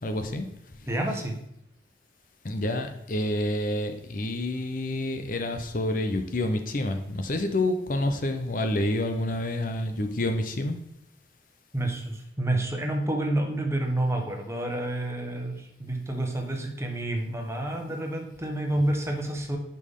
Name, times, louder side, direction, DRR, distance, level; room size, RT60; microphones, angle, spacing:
voice 1, 0.0-0.5 2.4-10.8, left 1 dB, 50° left, 6 dB, 0.7 m, -28 dB
voice 2, 0.9-1.4 11.7-19.6, right 1 dB, 15° right, 2 dB, 1.1 m, -29 dB
10.5 x 5.4 x 3.7 m, 0.81 s
head